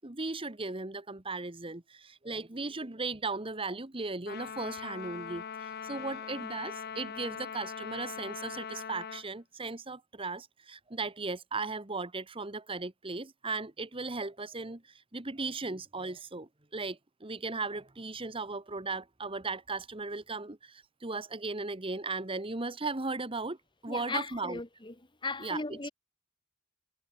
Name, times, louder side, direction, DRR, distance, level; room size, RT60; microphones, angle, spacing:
voice 1, 0.0-23.6 23.8-24.6 25.4-25.9, right 3 dB, 25° right, 1.3 m, -37 dB
Trumpet, 4.3-9.3, left 7 dB, 45° left, 0.7 m, -41 dB
voice 2, 23.9-24.9 25.2-25.9, left 3 dB, 20° left, 1.4 m, -36 dB
head